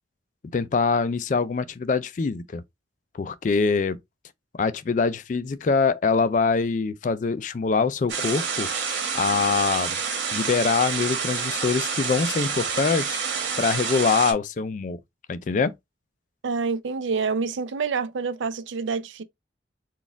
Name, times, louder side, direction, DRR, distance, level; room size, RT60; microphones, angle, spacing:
voice 1, 0.5-2.6 3.1-4.0 4.5-8.7 9.1-10.0 10.3-13.2 13.6-15.0 15.3-15.7, left 4 dB, 40° left, 0.3 m, -24 dB
sound 1, 8.1-14.3, right 6 dB, 75° right, 1.3 m, -28 dB
voice 2, 16.4-19.2, right 5 dB, 90° right, 0.5 m, -27 dB
4.1 x 2.4 x 3.4 m
head